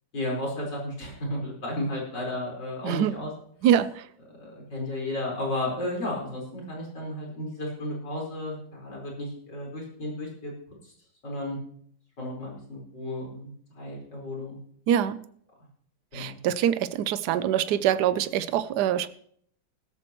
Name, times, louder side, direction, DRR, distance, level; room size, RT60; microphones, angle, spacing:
voice 1, 0.1-3.3 4.4-10.5 11.2-11.6 12.2-13.5 13.8-14.6 16.1-16.4, left 1 dB, 65° left, -3 dB, 5.3 m, -33 dB
voice 2, 2.8-3.2 3.6-4.1 14.9-15.2 16.1-19.1, right 10 dB, 65° right, 14 dB, 1.2 m, -24 dB
17.0 x 14.0 x 3.1 m, 0.63 s
omnidirectional pair, 2.0 m